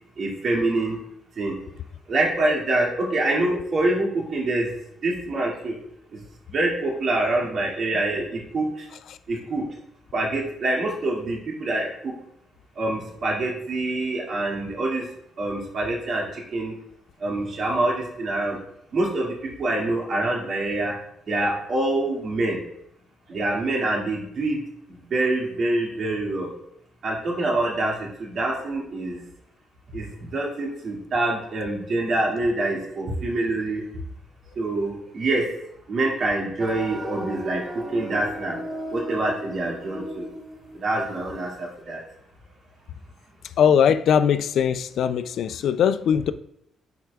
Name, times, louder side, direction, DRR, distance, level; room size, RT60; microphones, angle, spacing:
voice 1, 0.2-1.0 1.4-1.5 2.1-4.7 5.0-5.8 6.1-6.2 6.5-8.9 9.3-9.7 10.1-12.1 12.8-15.1 15.4-16.8 17.2-18.6 18.9-21.0 21.3-22.6 23.3-24.6 24.9-26.5 27.0-29.2 29.9-33.8 34.6-35.5 35.9-38.6 38.9-40.3 40.7-42.0, right 2 dB, 55° right, 2.2 m, -25 dB
sound 1, 36.6-41.4, right 1 dB, 30° right, 1.3 m, -35 dB
voice 2, 43.6-46.3, left 8 dB, 70° left, 0.3 m, -20 dB
11.5 x 4.4 x 2.4 m
cardioid pair, 90°, 0 cm